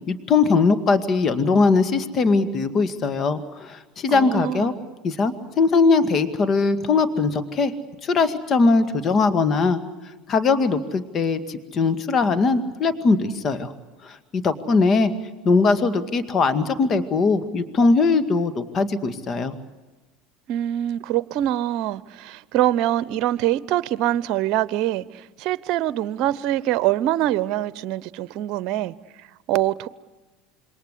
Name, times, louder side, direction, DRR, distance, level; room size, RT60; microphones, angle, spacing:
voice 1, 0.0-4.7 5.0-7.7 8.0-9.8 10.3-13.7 14.0-15.1 15.4-19.5, left 4 dB, 40° left, 2.0 m, -20 dB
voice 2, 4.1-4.7 20.5-28.9 29.5-29.9, right 13 dB, 55° right, 0.9 m, -24 dB
27.0 x 23.0 x 8.2 m
hypercardioid pair, 85°, 0 cm